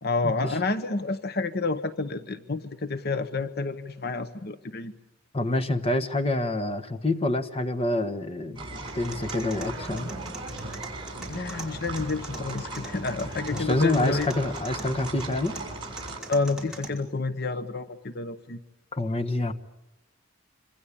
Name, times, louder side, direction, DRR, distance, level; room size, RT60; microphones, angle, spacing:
voice 1, 0.0-4.9 11.3-14.3 16.3-18.6, left 3 dB, 55° left, 11 dB, 1.0 m, -29 dB
voice 2, 5.3-10.1 13.5-15.5 18.9-19.5, left 2 dB, 30° left, 8 dB, 1.4 m, -27 dB
sound 1, 8.6-16.2, right 2 dB, 25° right, 7.6 m, -37 dB
sound 2, 8.9-16.9, right 2 dB, 5° right, 4.9 m, -43 dB
26.0 x 26.0 x 8.6 m, 0.91 s
head